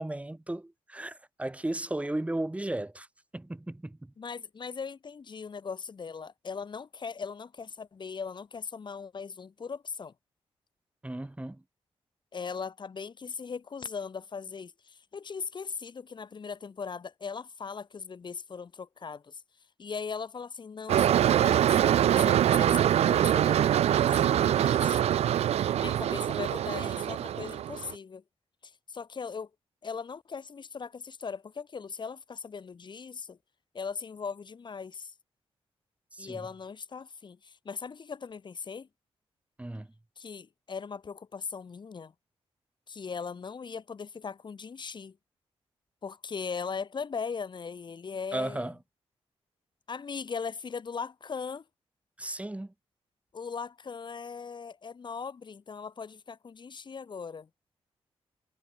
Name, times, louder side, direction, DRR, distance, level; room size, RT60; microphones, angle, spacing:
voice 1, 0.0-3.1 3.3-4.1 11.0-11.6 36.1-36.5 39.6-39.9 48.3-48.8 52.2-52.7, right 1 dB, 10° right, 3.3 m, -35 dB
voice 2, 4.2-10.1 12.3-19.4 19.8-25.1 25.8-28.2 28.6-29.5 29.8-33.4 33.7-35.1 36.2-38.9 40.2-42.1 42.9-45.2 46.0-48.7 49.9-51.6 53.3-57.5, left 5 dB, 45° left, 3.1 m, -39 dB
sound 1, 20.9-27.9, right 11 dB, 85° right, 0.8 m, -24 dB
cardioid pair, 95°, 10 cm